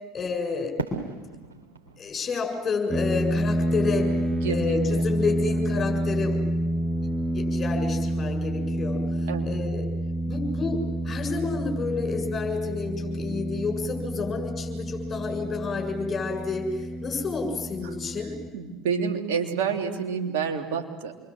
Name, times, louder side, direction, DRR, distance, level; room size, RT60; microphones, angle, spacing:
voice 1, 0.1-0.7 2.0-4.1 4.5-6.4 7.3-9.0 9.4-9.9 10.3-18.3, left 4 dB, 30° left, 3 dB, 7.4 m, -30 dB
Fireworks, 0.8-3.8, right 3 dB, 90° right, 3.3 m, -37 dB
sound 1, 2.9-18.5, right 1 dB, 5° left, 1.4 m, -28 dB
voice 2, 4.3-5.0 9.3-9.5 17.8-17.9 18.5-21.1, right 6 dB, 70° right, 2 dB, 3.3 m, -29 dB
28.0 x 23.0 x 8.0 m, 1.2 s
hypercardioid pair, 70°, 0 cm